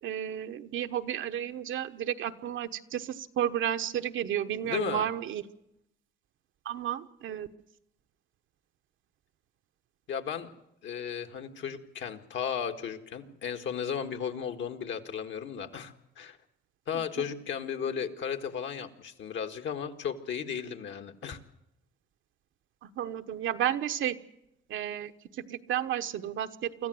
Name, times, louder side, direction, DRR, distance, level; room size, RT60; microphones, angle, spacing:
voice 1, 0.0-5.4 6.6-7.5 16.9-17.3 22.8-24.1 24.7-26.9, right 10 dB, 80° right, 9 dB, 1.1 m, -32 dB
voice 2, 4.6-5.1 10.1-10.5 10.8-16.4 16.9-21.4, left 7 dB, 70° left, 6 dB, 1.8 m, -35 dB
25.0 x 14.5 x 7.8 m, 0.84 s
cardioid pair, 90°, 20 cm